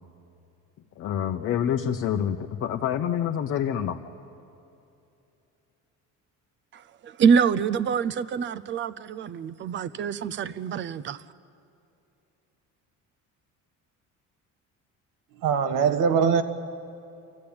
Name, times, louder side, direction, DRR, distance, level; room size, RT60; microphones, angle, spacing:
voice 1, 1.0-4.0, left 9 dB, 45° left, 0.8 m, -27 dB
voice 2, 6.7-11.2, right 6 dB, 35° right, 0.6 m, -25 dB
voice 3, 15.4-16.4, right 6 dB, 75° right, 1.4 m, -21 dB
26.5 x 15.0 x 8.7 m
cardioid pair, 155°, 32 cm